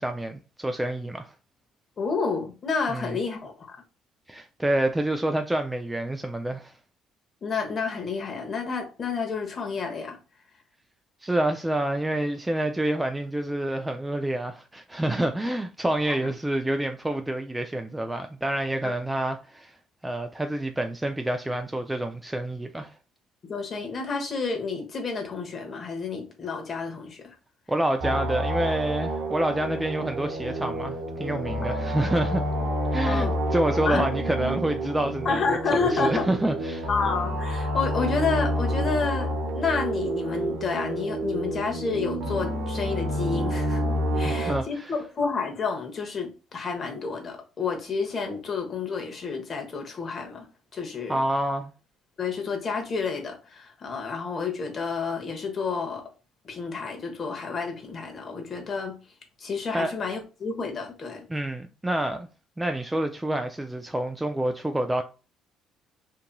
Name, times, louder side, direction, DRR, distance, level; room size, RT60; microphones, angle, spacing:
voice 1, 0.0-1.3 2.9-3.2 4.3-6.7 11.2-19.7 20.0-22.9 27.7-32.4 32.9-35.4 35.7-36.9 44.2-44.9 51.1-51.7 59.7-59.9 61.3-62.3 62.6-65.0, right 1 dB, 10° right, 0.3 m, -28 dB
voice 2, 2.0-3.8 7.4-10.2 16.0-16.3 18.8-18.9 23.4-27.4 31.6-31.7 33.0-33.3 33.7-34.0 35.2-36.3 36.9-43.8 44.2-50.5 50.7-51.2 52.2-56.1 56.4-59.0 59.4-61.3, left 5 dB, 45° left, 1.0 m, -30 dB
sound 1, 28.0-44.6, equal, 75° right, 0.6 m, -29 dB
2.8 x 2.5 x 2.2 m
hypercardioid pair, 60°, 0 cm